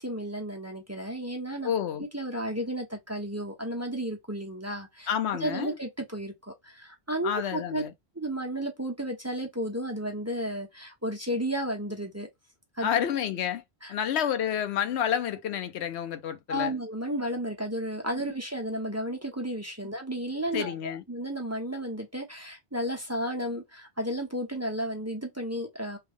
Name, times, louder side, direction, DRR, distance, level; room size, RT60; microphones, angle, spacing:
voice 1, 0.0-1.7 2.0-5.1 5.4-7.8 8.2-12.3 12.8-13.0 13.8-13.9 16.5-26.0, equal, 15° right, 0.8 m, -33 dB
voice 2, 1.6-2.1 5.1-5.8 7.2-7.9 12.8-13.6 13.9-16.8 18.1-18.3 20.5-21.0, left 9 dB, 80° left, 0.9 m, -29 dB
3.3 x 2.2 x 3.5 m
omnidirectional pair, 1.1 m